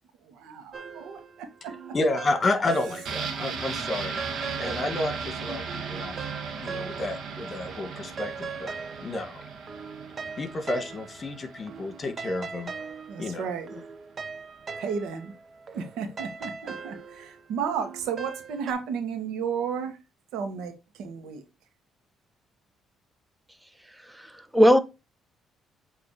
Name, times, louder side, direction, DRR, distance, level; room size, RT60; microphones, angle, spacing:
voice 1, 0.2-1.7 13.1-13.7 14.8-15.3 15.7-20.0 20.3-21.4, right 6 dB, 80° right, 1.6 m, -33 dB
sound 1, 0.7-3.3 3.7-7.4 7.7-18.7, right 5 dB, 45° right, 0.9 m, -41 dB
voice 2, 1.9-4.2 4.6-6.2 6.6-8.7 9.0-9.4 10.4-12.7 13.2-13.4, left 2 dB, 40° left, 1.7 m, -30 dB
sound 2, 3.1-12.7 13.0-13.1, right 5 dB, 65° right, 1.5 m, -37 dB
voice 3, 24.1-24.8, equal, 10° right, 1.0 m, -19 dB
7.8 x 3.2 x 4.8 m
supercardioid pair, 75°, 0 cm